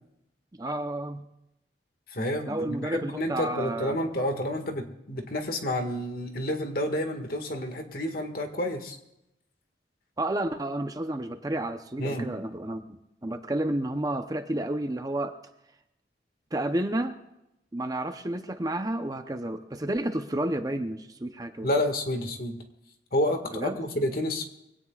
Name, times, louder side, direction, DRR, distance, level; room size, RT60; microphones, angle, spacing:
voice 1, 0.5-1.3 2.5-4.1 10.2-15.4 16.5-17.2 17.7-21.7 23.5-23.8, right 1 dB, 20° right, 7 dB, 0.8 m, -31 dB
voice 2, 2.1-9.0 12.0-12.3 21.6-22.6 23.1-24.5, left 1 dB, 55° left, 5 dB, 1.8 m, -29 dB
23.5 x 17.5 x 2.4 m, 0.86 s
head